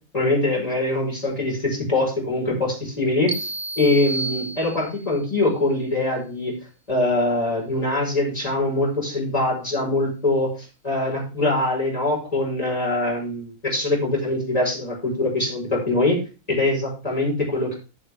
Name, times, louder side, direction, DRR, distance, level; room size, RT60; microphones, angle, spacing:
voice 1, 0.1-6.5 6.9-16.2 16.5-17.7, left 2 dB, 25° left, -4 dB, 5.0 m, -23 dB
sound 1, 3.3-5.1, right 2 dB, 25° right, 1.2 m, -31 dB
13.5 x 6.6 x 3.6 m, 0.33 s
omnidirectional pair, 1.5 m